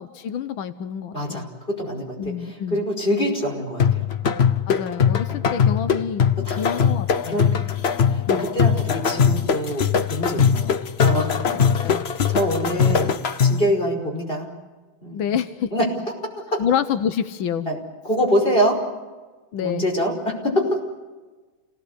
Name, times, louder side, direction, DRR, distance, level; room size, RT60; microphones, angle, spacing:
voice 1, 0.0-1.5 2.2-2.8 4.7-6.3 6.6-7.5 8.3-8.5 11.5-12.1 15.1-15.7 16.6-17.7 19.5-19.9, left 8 dB, 85° left, 11 dB, 1.7 m, -27 dB
voice 2, 1.1-4.1 5.3-5.4 6.4-6.7 7.3-11.5 12.3-13.1 13.4-14.5 15.0-15.2 15.7-15.9 16.2-16.6 17.7-17.8 18.0-18.8 19.6-20.8, equal, 25° left, 1 dB, 5.5 m, -25 dB
sound 1, 3.8-13.7, left 7 dB, 50° left, 0.8 m, -21 dB
29.0 x 18.0 x 8.1 m, 1.3 s
omnidirectional pair, 2.1 m